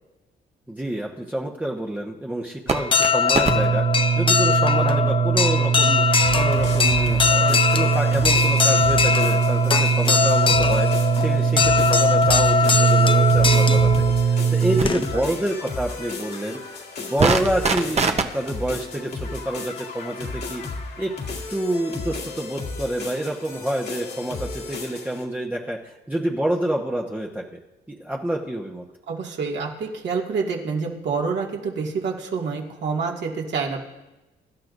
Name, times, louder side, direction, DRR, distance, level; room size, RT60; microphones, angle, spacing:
voice 1, 0.7-3.8 4.1-6.0 6.4-10.9 11.2-20.6 21.0-21.1 21.5-27.6 27.9-28.8, right 1 dB, 10° right, -2 dB, 1.1 m, -28 dB
sound 1, 2.7-15.3, left 5 dB, 25° left, 0.6 m, -21 dB
sound 2, 2.7-3.1 3.4-14.9 17.2-18.2, right 7 dB, 35° right, 1.0 m, -21 dB
sound 3, 6.1-25.2, left 4 dB, 60° left, 2.2 m, -34 dB
voice 2, 29.1-33.8, right 5 dB, 60° right, -1 dB, 2.3 m, -27 dB
22.5 x 11.5 x 2.7 m, 1.0 s
cardioid pair, 90°, 20 cm